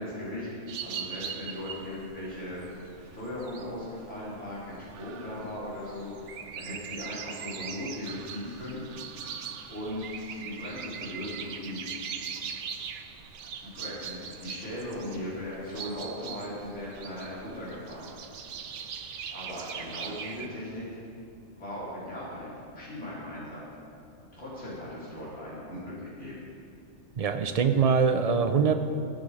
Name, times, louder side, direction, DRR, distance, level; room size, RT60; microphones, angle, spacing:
voice 1, 0.0-2.6 3.1-8.9 9.7-11.8 13.6-18.1 19.3-21.0 21.5-23.6 24.3-26.5, left 1 dB, 70° left, -9 dB, 3.9 m, -38 dB
sound 1, 0.7-20.5, right 7 dB, 75° right, 1.0 m, -41 dB
voice 2, 27.2-28.8, right 6 dB, 45° right, 8 dB, 0.5 m, -23 dB
15.0 x 7.8 x 4.9 m, 2.5 s
omnidirectional pair, 1.3 m